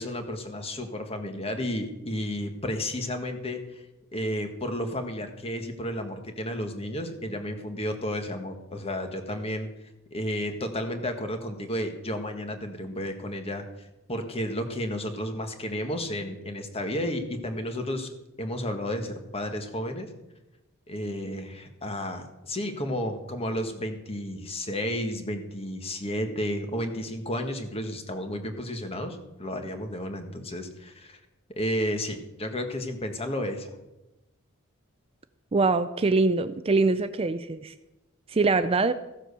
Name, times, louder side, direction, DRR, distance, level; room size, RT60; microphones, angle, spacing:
voice 1, 0.0-3.8 4.1-9.7 10.1-13.6 14.1-18.1 18.4-20.1 20.9-31.2 31.6-33.7, equal, 30° left, 6 dB, 1.5 m, -32 dB
voice 2, 35.5-37.7 38.3-38.9, right 3 dB, 25° right, 11 dB, 0.5 m, -23 dB
15.0 x 7.5 x 6.8 m, 0.98 s
head